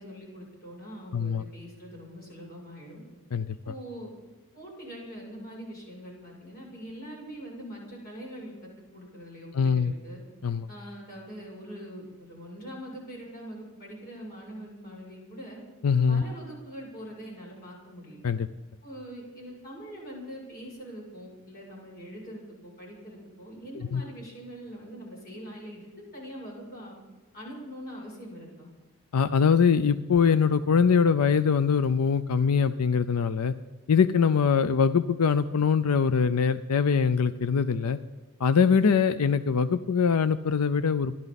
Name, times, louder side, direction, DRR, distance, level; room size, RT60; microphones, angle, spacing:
voice 1, 0.0-3.0 3.6-4.1 4.5-10.2 10.7-15.6 16.1-18.2 18.8-26.9 27.3-28.7, equal, 45° left, -3 dB, 7.0 m, -43 dB
voice 2, 1.1-1.4 3.3-3.6 9.5-9.9 10.4-10.7 15.8-16.2 18.2-18.5 23.9-24.0 29.1-33.5 33.9-38.0 38.4-41.1, left 6 dB, 85° left, 13 dB, 0.5 m, -23 dB
29.0 x 12.0 x 4.1 m, 1.2 s
head